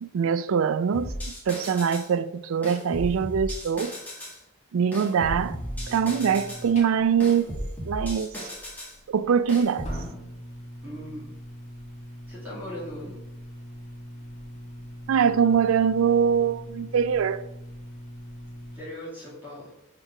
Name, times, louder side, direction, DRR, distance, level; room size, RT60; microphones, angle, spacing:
voice 1, 0.0-4.0 4.7-5.6 5.9-7.5 7.8-8.5 9.1-9.9 15.1-17.5, right 7 dB, 85° right, 0.4 m, -23 dB
sound 1, 0.9-2.1 2.6-4.4 4.9-6.7 7.2-9.0 9.5-10.0, equal, 10° left, 1.7 m, -35 dB
sound 2, 5.2-18.8, equal, 30° left, 1.7 m, -42 dB
voice 2, 10.8-11.3 12.3-13.2 18.7-19.7, equal, 10° right, 2.2 m, -39 dB
5.0 x 4.5 x 5.7 m
head